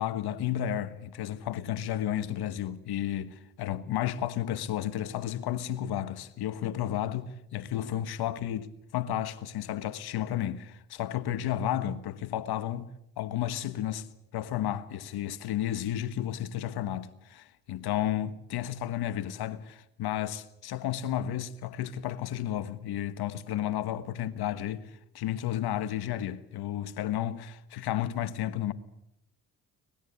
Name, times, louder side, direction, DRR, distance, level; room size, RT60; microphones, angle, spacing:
voice 1, 0.0-12.9 13.2-14.1 14.3-28.7, left 11 dB, 80° left, 1.4 m, -32 dB
25.0 x 19.5 x 8.3 m
supercardioid pair, 60°, 38 cm